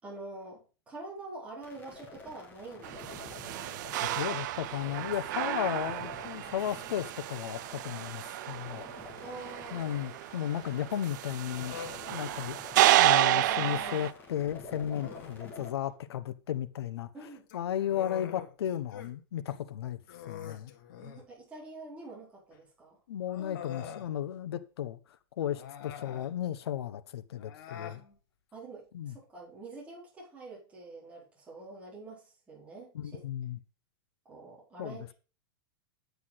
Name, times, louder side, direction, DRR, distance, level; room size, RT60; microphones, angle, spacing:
voice 1, 0.0-3.3 4.1-4.2 9.2-9.9 15.0-15.1 17.1-17.4 21.0-23.0 27.7-28.2 28.5-32.9 34.2-35.1, right 2 dB, 10° right, 4.5 m, -46 dB
sound 1, 1.6-15.7, left 3 dB, 15° left, 2.7 m, -49 dB
sound 2, 2.8-14.1, right 15 dB, 50° right, 0.5 m, -30 dB
voice 2, 4.0-8.9 9.7-11.7 12.1-12.6 12.9-17.1 17.5-20.0 20.3-20.7 23.1-25.0 25.4-28.0 28.9-29.1 32.9-33.6 34.8-35.1, left 10 dB, 80° left, 1.1 m, -34 dB
Human voice, 11.5-12.0 13.2-14.1 14.9-15.4 17.3-19.1 19.5-19.6 20.1-21.3 22.5-22.6 23.3-24.1 25.5-26.3 27.4-28.0, left 9 dB, 50° left, 2.0 m, -45 dB
9.5 x 8.4 x 4.1 m
supercardioid pair, 165°, 13 cm